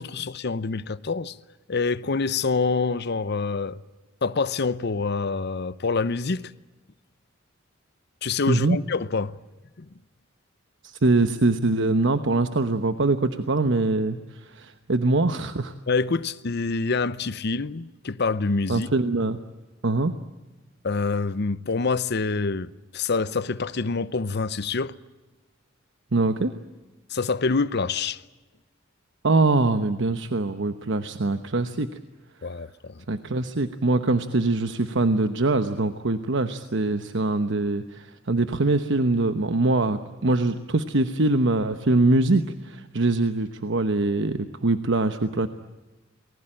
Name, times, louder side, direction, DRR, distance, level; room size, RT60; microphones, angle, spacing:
voice 1, 0.0-1.4 1.7-3.8 4.2-6.4 8.2-9.3 9.8-9.9 15.9-18.9 20.8-24.9 27.1-28.2 32.4-33.0, left 4 dB, 60° left, 0.8 m, -26 dB
voice 2, 8.5-8.8 10.8-15.7 18.7-19.4 19.8-20.1 26.1-26.5 29.2-32.0 33.1-45.5, right 2 dB, 65° right, 1.0 m, -23 dB
28.5 x 20.0 x 8.9 m
head